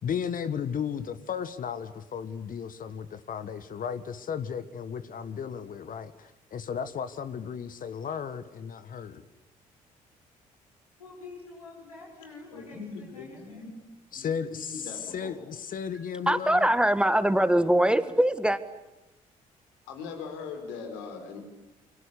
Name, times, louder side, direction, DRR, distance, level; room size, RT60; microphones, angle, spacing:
voice 1, 0.0-9.2 14.1-16.7, left 7 dB, 50° left, 1.5 m, -35 dB
voice 2, 11.0-13.7, left 3 dB, 90° left, 6.4 m, -47 dB
voice 3, 12.5-13.7 14.1-15.3 19.9-21.4, left 5 dB, 75° left, 4.8 m, -40 dB
voice 4, 16.3-18.6, right 1 dB, 5° right, 1.9 m, -22 dB
28.5 x 24.0 x 8.4 m
hypercardioid pair, 45°, 18 cm